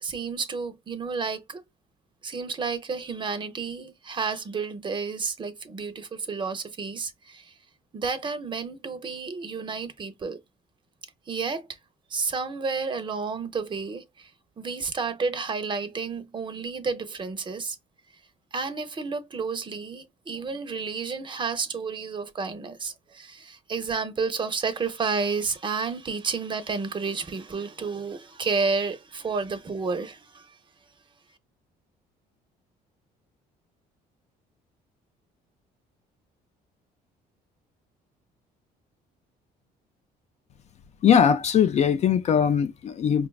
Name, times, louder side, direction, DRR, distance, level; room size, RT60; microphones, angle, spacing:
voice 1, 0.0-1.6 2.2-7.5 7.9-10.4 11.3-11.7 12.1-14.3 14.6-17.8 18.5-30.6, right 4 dB, 30° right, 0.6 m, -31 dB
voice 2, 41.0-43.3, left 8 dB, 40° left, 0.4 m, -20 dB
4.9 x 2.2 x 2.3 m
cardioid pair, 110°, 17 cm